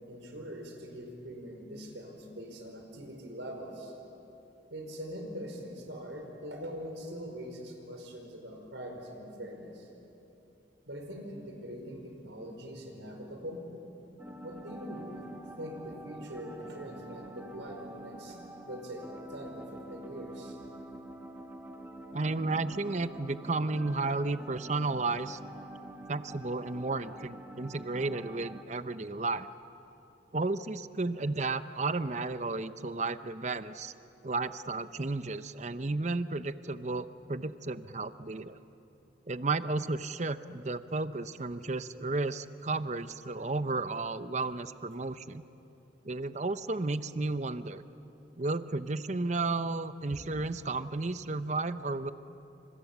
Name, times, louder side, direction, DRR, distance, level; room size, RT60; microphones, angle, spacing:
voice 1, 0.1-3.9 4.7-9.9 10.9-13.6 14.4-15.2 15.6-18.4 18.6-20.6 50.1-50.2, equal, 80° right, 2 dB, 5.1 m, -43 dB
sound 1, 14.2-28.6, right 1 dB, 10° right, 1.4 m, -47 dB
voice 2, 22.1-25.4 26.1-29.5 30.3-33.9 34.2-38.6 39.3-45.4 46.0-47.8 48.4-52.1, right 3 dB, 40° right, 12 dB, 0.7 m, -33 dB
29.5 x 26.5 x 7.3 m, 3.0 s
head